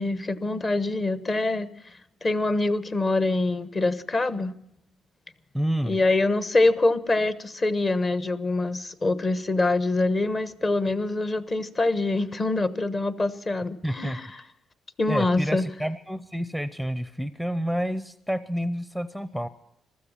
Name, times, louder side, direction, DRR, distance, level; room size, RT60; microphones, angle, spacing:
voice 1, 0.0-4.5 5.8-14.3 15.0-15.6, left 2 dB, 35° left, 14 dB, 1.1 m, -25 dB
voice 2, 5.5-6.0 13.8-14.2 15.1-19.5, equal, 5° left, 14 dB, 0.6 m, -29 dB
15.5 x 13.0 x 7.3 m, 0.77 s
cardioid pair, 90°, 0 cm